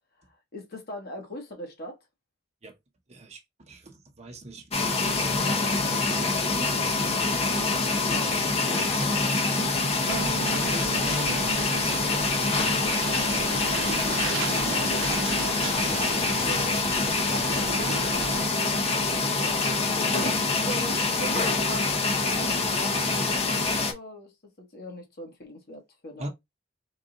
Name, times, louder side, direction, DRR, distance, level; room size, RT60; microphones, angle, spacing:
voice 1, 0.2-2.0 14.7-17.6 18.0-18.2 19.0-26.3, left 1 dB, 55° left, 1.4 m, -41 dB
voice 2, 3.1-5.4 9.8-12.2 26.2-26.3, right 1 dB, 35° right, 0.8 m, -42 dB
sound 1, 4.7-23.9, left 3 dB, 35° left, 0.7 m, -25 dB
sound 2, 10.1-18.5, right 6 dB, 80° right, 0.5 m, -35 dB
3.8 x 2.4 x 3.8 m
head